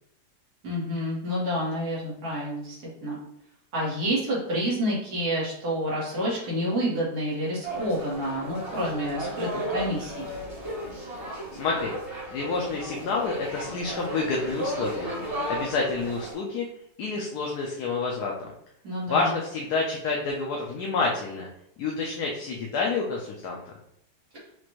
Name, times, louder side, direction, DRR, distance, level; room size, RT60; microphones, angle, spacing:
voice 1, 0.6-3.2 3.7-10.3 18.8-19.3, equal, 65° right, -7 dB, 2.2 m, -29 dB
sound 1, 7.6-16.3, equal, 40° right, 1.7 m, -34 dB
voice 2, 11.5-11.9 12.3-16.7 17.0-18.5 19.1-21.5 21.8-23.6, left 4 dB, 70° left, -1 dB, 1.2 m, -28 dB
5.9 x 2.6 x 3.0 m, 0.73 s
omnidirectional pair, 1.9 m